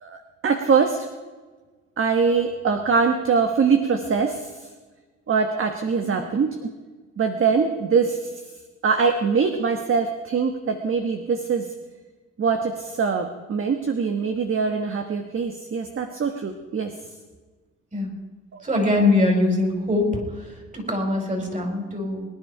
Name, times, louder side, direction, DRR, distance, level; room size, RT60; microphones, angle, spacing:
voice 1, 0.0-1.1 2.0-4.5 5.3-6.6 7.2-8.3 8.8-11.7 12.4-16.9, right 5 dB, 45° right, 6 dB, 1.4 m, -23 dB
voice 2, 18.6-20.2 20.7-22.3, left 2 dB, 25° right, 2 dB, 5.3 m, -22 dB
23.0 x 10.5 x 5.0 m, 1.4 s
cardioid pair, 90°, 30 cm